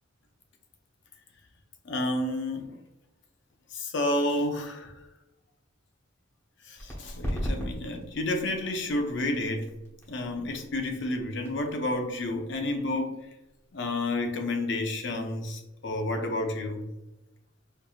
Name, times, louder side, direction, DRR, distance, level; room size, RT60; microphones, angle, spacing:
voice 1, 1.8-2.7 3.7-4.9 6.7-9.8 10.1-13.2 13.7-16.9, left 1 dB, 60° left, 4 dB, 0.5 m, -30 dB
sound 1, 6.8-14.1, equal, 10° left, 0.8 m, -39 dB
4.5 x 2.6 x 2.3 m, 0.95 s
head